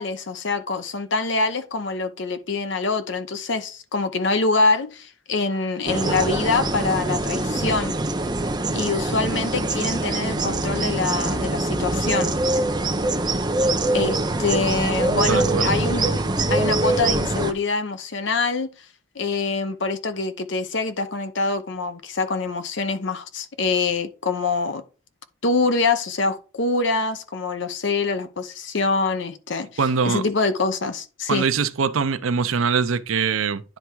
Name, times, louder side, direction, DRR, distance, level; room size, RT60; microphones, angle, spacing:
voice 1, 0.0-7.9 8.7-12.3 13.9-16.2 16.4-18.7 19.1-24.8 25.4-29.7 30.0-31.4, left 3 dB, 60° left, 0.8 m, -25 dB
sound 1, 5.9-17.5, right 2 dB, 20° right, 0.6 m, -23 dB
voice 2, 15.3-15.7 29.8-30.3 31.3-33.6, right 5 dB, 80° right, 0.6 m, -22 dB
10.0 x 3.5 x 4.5 m
head